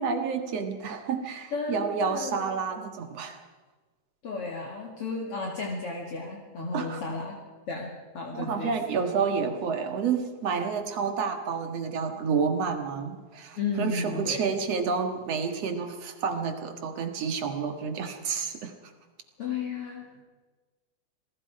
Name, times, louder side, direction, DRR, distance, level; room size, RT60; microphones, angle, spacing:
voice 1, 0.0-3.4 6.7-7.0 8.3-18.7, right 5 dB, 60° right, 6 dB, 2.7 m, -29 dB
voice 2, 1.5-2.5 4.2-7.4 7.7-9.0 13.5-14.5 19.4-20.2, left 4 dB, 50° left, -1 dB, 3.0 m, -33 dB
28.0 x 19.5 x 4.9 m, 1.3 s
omnidirectional pair, 3.5 m